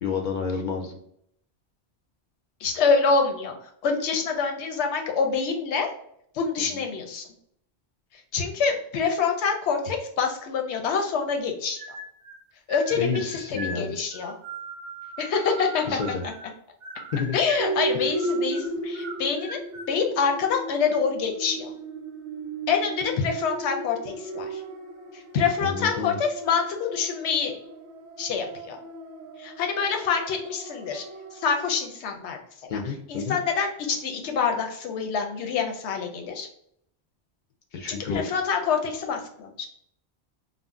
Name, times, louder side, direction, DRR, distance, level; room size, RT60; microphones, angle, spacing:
voice 1, 0.0-1.0 6.6-6.8 12.9-13.9 15.8-16.2 17.1-17.4 17.9-18.1 25.6-26.2 32.7-33.4 37.7-38.2, left 5 dB, 60° left, 2 dB, 0.5 m, -30 dB
voice 2, 2.6-3.5 3.8-5.9 6.3-7.3 8.3-11.8 12.7-13.2 13.5-14.3 15.2-16.0 17.3-19.6 19.9-21.7 22.7-24.6 25.3-27.6 28.2-28.8 29.4-31.0 31.4-32.4 33.1-36.5 37.9-39.7, left 5 dB, 90° left, 3 dB, 0.9 m, -26 dB
sound 1, 11.8-12.4 12.7-16.5 16.8-17.8 18.1-19.9, right 2 dB, 50° right, 0.6 m, -40 dB
sound 2, 17.6-31.8, right 2 dB, 90° right, 0.9 m, -35 dB
2.5 x 2.0 x 3.5 m, 0.70 s
omnidirectional pair, 1.1 m